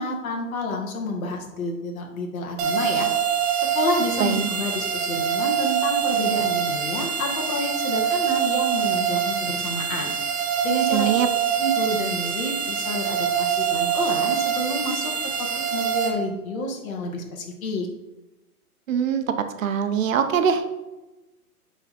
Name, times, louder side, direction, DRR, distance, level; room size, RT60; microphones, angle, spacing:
voice 1, 0.0-3.1 3.6-10.2 10.6-11.2 11.6-15.1 15.4-17.9, left 1 dB, 60° left, 1 dB, 2.0 m, -29 dB
sound 1, 2.6-16.1, right 8 dB, 40° right, 1.5 m, -25 dB
voice 2, 10.9-11.3 18.9-19.2 19.6-20.7, right 7 dB, 55° right, 8 dB, 0.9 m, -22 dB
9.2 x 4.0 x 4.3 m, 1.0 s
hypercardioid pair, 150°, 46 cm